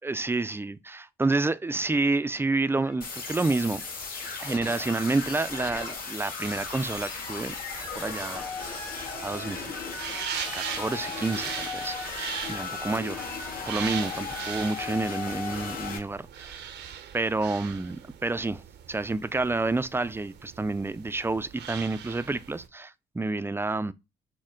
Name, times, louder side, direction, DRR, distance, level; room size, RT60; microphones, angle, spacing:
voice 1, 0.0-3.8 4.4-7.5 7.9-8.9 9.2-9.7 10.5-12.0 12.5-13.3 13.7-16.7 17.1-18.6 18.9-23.9, right 3 dB, 15° right, 0.4 m, -29 dB
sound 1, 1.8-1.9 2.2-3.5 4.5-9.9 11.6-11.7 12.1-12.8, left 5 dB, 75° left, 1.8 m, -54 dB
sound 2, 3.0-16.0, left 4 dB, 55° left, 1.8 m, -36 dB
sound 3, 6.4-22.7, right 9 dB, 75° right, 0.7 m, -40 dB
6.3 x 2.1 x 3.7 m
supercardioid pair, 65°, 18 cm